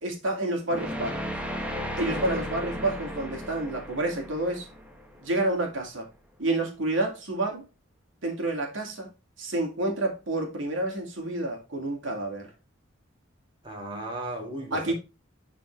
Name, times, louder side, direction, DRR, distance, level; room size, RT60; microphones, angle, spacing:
voice 1, 0.0-1.3 2.0-4.7 5.2-6.1 6.4-7.6 8.2-9.1 9.4-12.5 14.7-14.9, right 2 dB, 65° right, 2.4 m, -29 dB
sound 1, 0.7-5.8, equal, 5° right, 1.4 m, -35 dB
voice 2, 2.1-2.5 13.6-14.9, right 1 dB, 25° right, 2.5 m, -36 dB
11.0 x 4.3 x 3.3 m
head